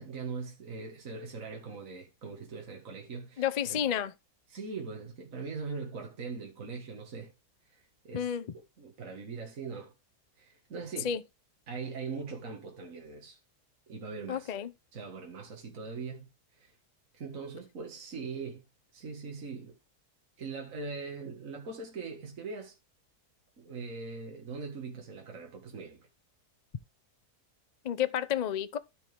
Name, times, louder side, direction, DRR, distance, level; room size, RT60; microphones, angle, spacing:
voice 1, 0.0-3.8 4.5-7.3 7.7-8.3 8.8-9.9 10.4-11.1 11.7-13.4 13.9-14.5 14.9-16.8 17.1-18.6 18.9-19.7 20.4-22.8 23.6-26.0, right 4 dB, 55° right, 2.2 m, -41 dB
voice 2, 3.4-4.1 8.1-8.4 11.0-11.2 14.3-14.7 27.8-28.8, left 9 dB, 65° left, 0.4 m, -30 dB
13.0 x 5.4 x 3.4 m
omnidirectional pair, 1.7 m